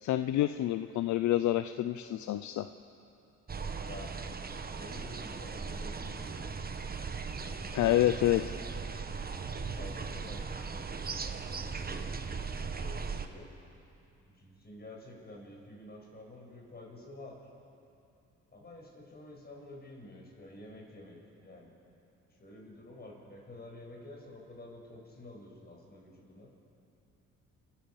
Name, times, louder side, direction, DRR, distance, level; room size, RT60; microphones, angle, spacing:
voice 1, 0.0-2.7 7.7-8.6, left 13 dB, 70° left, 10 dB, 0.6 m, -28 dB
sound 1, 3.5-13.3, right 5 dB, 30° right, 1.2 m, -38 dB
voice 2, 3.8-4.3 4.6-6.6 7.4-7.9 9.1-12.1 12.5-13.5 14.3-17.4 18.5-21.7 22.4-26.5, left 1 dB, 30° left, -1 dB, 6.4 m, -50 dB
29.5 x 12.5 x 7.2 m, 2.7 s
cardioid pair, 90°, 30 cm